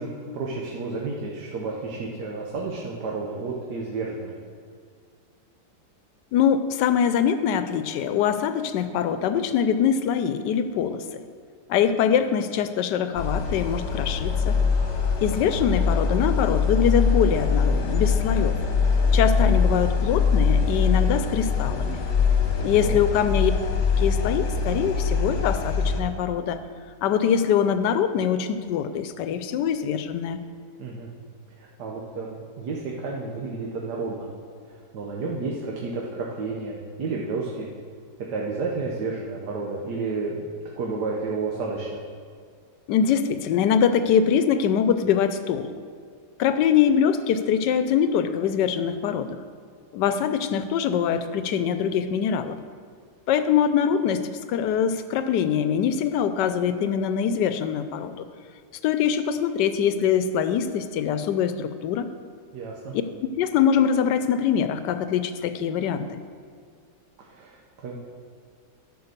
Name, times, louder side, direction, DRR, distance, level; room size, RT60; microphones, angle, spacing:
voice 1, 0.0-4.3 22.6-23.0 30.8-31.1 31.6-34.3 34.7-37.7 38.3-42.0 62.5-62.9 67.2-68.0, right 3 dB, 75° right, -2 dB, 1.5 m, -31 dB
voice 2, 6.3-11.0 11.7-14.6 15.2-18.5 19.1-22.0 22.6-23.5 24.0-26.6 27.0-30.4 42.9-45.7 46.4-49.4 49.9-52.6 53.3-58.3 58.8-62.1 62.9-63.0 63.3-66.2, left 8 dB, 90° left, 10 dB, 1.3 m, -23 dB
sound 1, 13.1-26.0, left 5 dB, 45° left, 1.3 m, -23 dB
11.5 x 5.1 x 6.6 m, 2.1 s
omnidirectional pair, 1.8 m